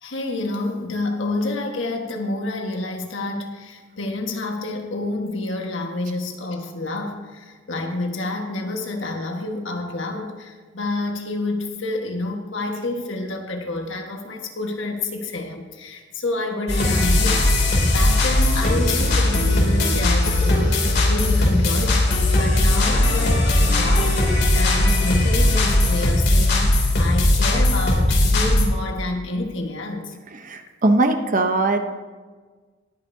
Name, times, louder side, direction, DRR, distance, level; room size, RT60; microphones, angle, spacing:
voice 1, 0.0-20.7 21.1-22.0 22.4-24.2 24.5-30.1, left 2 dB, 70° left, 3 dB, 1.5 m, -28 dB
sound 1, 16.7-28.6, left 1 dB, 55° left, 2.8 m, -18 dB
voice 2, 30.4-31.8, right 2 dB, 40° right, 7 dB, 0.8 m, -20 dB
20.0 x 9.0 x 2.7 m, 1.4 s
head